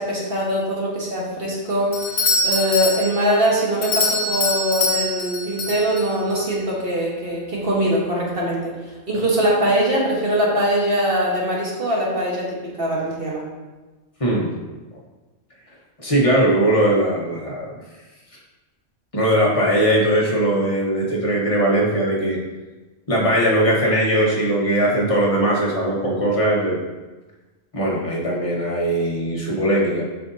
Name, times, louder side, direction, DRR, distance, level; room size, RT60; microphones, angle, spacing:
voice 1, 0.0-8.7 9.1-13.4, equal, 55° right, -4 dB, 1.6 m, -22 dB
Doorbell, 1.9-6.4, left 2 dB, 50° left, 1.0 m, -24 dB
voice 2, 16.0-17.7 19.1-22.4 23.1-26.8 27.7-30.0, right 1 dB, 30° left, -4 dB, 1.3 m, -19 dB
7.9 x 5.7 x 2.7 m, 1.2 s
omnidirectional pair, 1.2 m